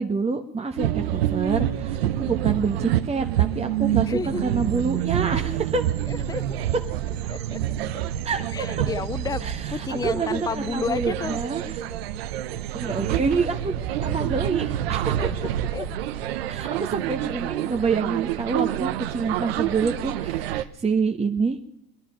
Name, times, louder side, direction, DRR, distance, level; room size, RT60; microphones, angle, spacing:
voice 1, 0.0-5.8 8.2-8.4 9.4-11.9 12.7-15.3 16.5-21.7, right 4 dB, 20° right, 4 dB, 1.2 m, -27 dB
sound 1, 0.8-20.6, right 12 dB, 90° right, 0.8 m, -27 dB
voice 2, 4.1-4.5 6.1-6.6 7.3-7.6 8.5-11.4 15.1-15.9 16.3-16.4, left 4 dB, 10° left, 17 dB, 0.6 m, -31 dB
22.5 x 11.0 x 5.6 m, 0.83 s
supercardioid pair, 80°, 30 cm